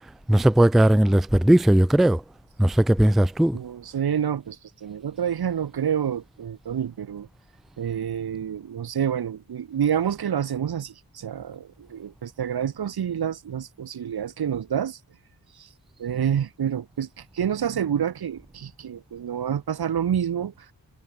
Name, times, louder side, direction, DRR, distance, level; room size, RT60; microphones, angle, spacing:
voice 1, 0.3-2.2 2.6-3.6, right 1 dB, ahead, 0.4 m, -18 dB
voice 2, 3.5-7.3 7.8-15.0 15.6-15.7 16.0-20.7, right 9 dB, 80° right, 1.5 m, -28 dB
wide cardioid pair, 175°, 37 cm